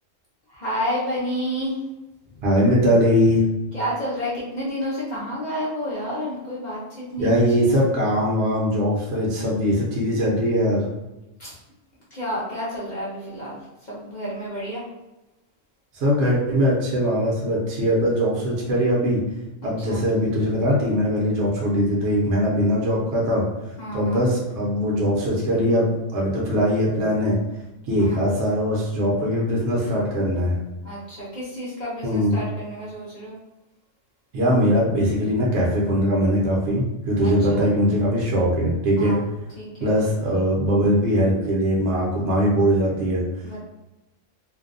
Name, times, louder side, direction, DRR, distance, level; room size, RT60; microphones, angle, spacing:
voice 1, 0.5-1.8 3.7-7.4 11.4-11.6 12.1-13.6 13.9-14.9 19.6-20.0 23.8-24.2 28.0-28.2 30.8-33.3 37.2-37.7 39.0-39.2 39.6-40.0 43.4-43.6, equal, 45° left, -7 dB, 0.7 m, -30 dB
voice 2, 2.4-3.4 7.2-10.9 15.9-19.2 19.6-23.4 23.9-27.4 27.9-30.6 32.0-32.4 34.3-39.2 39.8-43.2, equal, 65° right, -4 dB, 0.9 m, -21 dB
2.6 x 2.1 x 2.5 m, 1.0 s
omnidirectional pair, 1.3 m